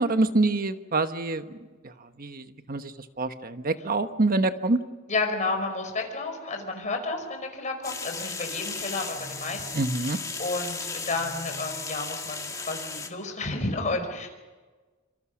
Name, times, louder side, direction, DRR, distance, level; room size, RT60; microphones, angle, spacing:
voice 1, 0.0-1.4 1.8-1.9 2.2-4.8 9.7-10.2, right 2 dB, 45° right, 9 dB, 1.2 m, -26 dB
voice 2, 5.1-9.7 10.0-14.3, left 3 dB, 35° left, 4 dB, 5.1 m, -31 dB
sound 1, 7.8-13.1, left 4 dB, 15° left, 2.1 m, -35 dB
26.5 x 26.0 x 6.3 m, 1.3 s
head